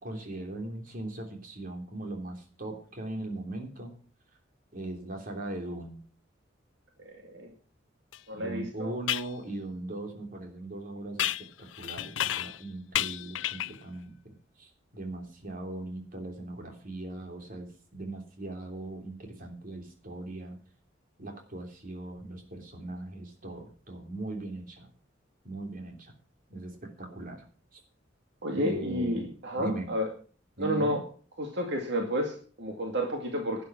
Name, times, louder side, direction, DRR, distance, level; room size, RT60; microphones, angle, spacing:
voice 1, 0.0-3.9 4.7-6.0 8.3-11.5 11.7-20.6 21.2-24.9 25.4-26.1 26.5-27.4 27.7-27.8 28.5-29.9 30.6-31.0, right 2 dB, 50° right, 3 dB, 3.3 m, -39 dB
sound 1, 8.1-8.2 9.1-9.3 11.2-12.6 12.9-13.8, left 12 dB, 75° left, 0.5 m, -32 dB
voice 2, 8.3-8.9 28.4-30.1 30.6-31.0 31.4-33.6, equal, 65° right, 2 dB, 2.2 m, -31 dB
12.0 x 9.2 x 6.1 m, 0.41 s
head